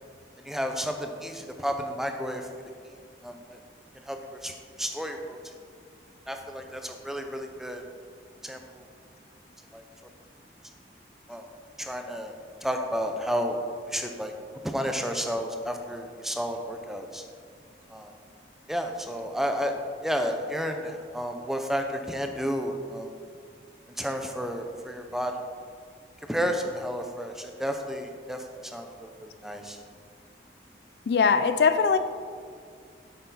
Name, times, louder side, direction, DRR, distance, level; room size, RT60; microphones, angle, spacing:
voice 1, 0.4-2.6 3.2-3.6 4.0-5.4 6.3-7.8 8.4-8.8 9.7-9.8 11.3-11.5 11.8-12.3 12.6-13.6 13.8-14.3 14.6-17.2 17.9-18.1 18.7-19.7 20.0-23.1 24.0-25.4 26.3-29.8, equal, ahead, 4 dB, 0.5 m, -32 dB
voice 2, 31.1-32.0, left 5 dB, 70° left, 11 dB, 0.4 m, -21 dB
8.1 x 6.5 x 4.0 m, 2.2 s
head